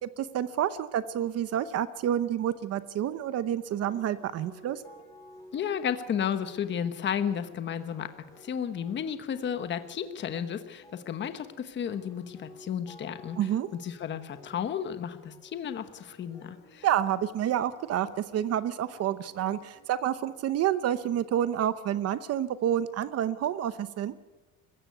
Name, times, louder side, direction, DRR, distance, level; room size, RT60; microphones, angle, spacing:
voice 1, 0.0-4.8 13.4-13.7 16.8-24.1, right 10 dB, 45° right, 14 dB, 0.9 m, -29 dB
sound 1, 3.8-19.8, equal, 10° left, 5.8 m, -54 dB
voice 2, 5.5-8.1 8.4-13.5 13.8-16.9, left 8 dB, 35° left, 10 dB, 1.2 m, -33 dB
21.5 x 15.5 x 9.3 m, 1.2 s
cardioid pair, 165°, 33 cm